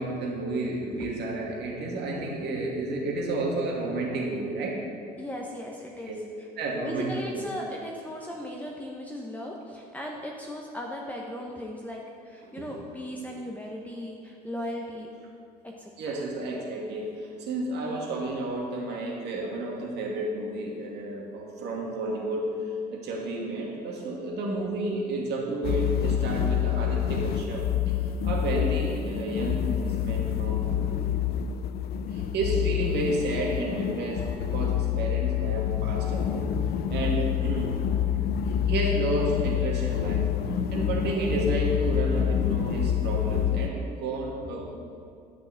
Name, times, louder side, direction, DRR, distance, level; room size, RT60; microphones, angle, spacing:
voice 1, 0.0-4.8 6.0-6.2 6.6-7.4 12.5-12.8 13.2-13.3 16.0-22.5 22.9-28.0 28.2-31.0 32.1-36.4 36.9-37.7 38.7-40.3 40.7-44.7, right 2 dB, 55° right, -2 dB, 2.5 m, -31 dB
voice 2, 5.2-6.2 6.8-15.1 15.6-16.2, equal, 5° left, -1 dB, 1.2 m, -37 dB
sound 1, 25.6-43.7, left 10 dB, 50° left, 0.6 m, -27 dB
11.0 x 6.2 x 6.1 m, 2.4 s
hypercardioid pair, 60°, 21 cm